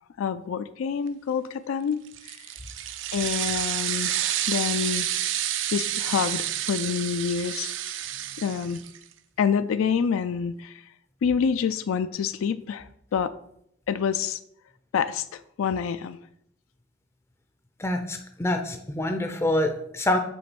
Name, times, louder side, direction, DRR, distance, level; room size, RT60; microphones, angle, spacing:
voice 1, 0.2-2.4 3.1-5.1 5.7-7.7 8.0-8.1 8.4-8.8 9.4-10.8 11.2-13.3 13.9-14.4 14.9-16.2, left 7 dB, 75° left, 12 dB, 0.3 m, -27 dB
sound 1, 2.1-9.0, right 12 dB, 60° right, 0.4 m, -29 dB
voice 2, 17.8-20.2, left 1 dB, 10° left, 5 dB, 0.4 m, -26 dB
7.0 x 3.1 x 6.0 m, 0.73 s
head